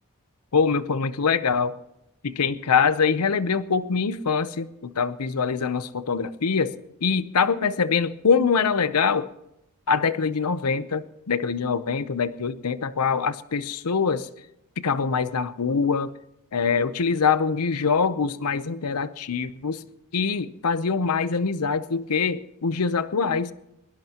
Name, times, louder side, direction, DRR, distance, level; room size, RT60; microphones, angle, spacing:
voice 1, 0.5-1.8 2.2-6.7 7.0-9.3 9.9-14.3 14.8-16.1 16.5-19.8 20.1-23.5, left 5 dB, 90° left, 14 dB, 0.7 m, -24 dB
21.5 x 19.0 x 2.9 m, 0.84 s
head